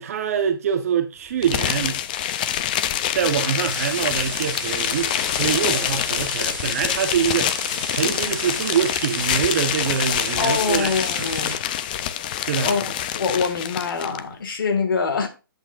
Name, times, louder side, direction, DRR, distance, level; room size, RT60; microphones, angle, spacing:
voice 1, 0.0-2.0 3.1-7.6 7.9-10.9 11.2-11.3 12.4-12.7, right 8 dB, 40° right, 0.9 m, -24 dB
sound 1, 1.4-14.2, left 11 dB, 25° left, 0.4 m, -26 dB
sound 2, 3.4-11.5, right 2 dB, 5° right, 5.2 m, -34 dB
voice 2, 10.4-11.7 12.6-15.3, left 5 dB, 65° left, 1.8 m, -24 dB
9.2 x 7.9 x 2.4 m
hypercardioid pair, 160°, 12 cm